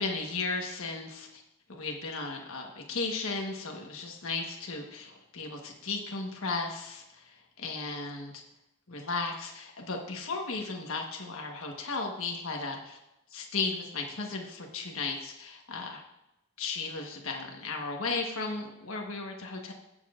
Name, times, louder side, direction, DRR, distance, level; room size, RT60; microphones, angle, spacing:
voice 1, 0.0-1.4 1.7-8.3 8.9-13.0 13.3-16.0 16.6-19.7, left 3 dB, 85° left, 1 dB, 1.3 m, -35 dB
17.5 x 7.0 x 2.5 m, 0.90 s
head